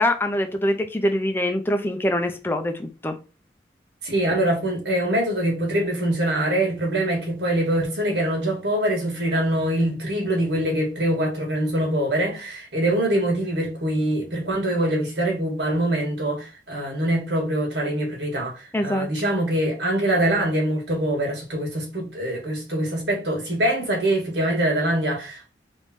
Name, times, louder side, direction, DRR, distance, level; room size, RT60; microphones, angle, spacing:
voice 1, 0.0-3.2 18.7-19.1, left 1 dB, 15° left, 0.5 m, -24 dB
voice 2, 4.0-25.5, right 1 dB, 80° right, 1.7 m, -24 dB
3.5 x 3.1 x 4.2 m
head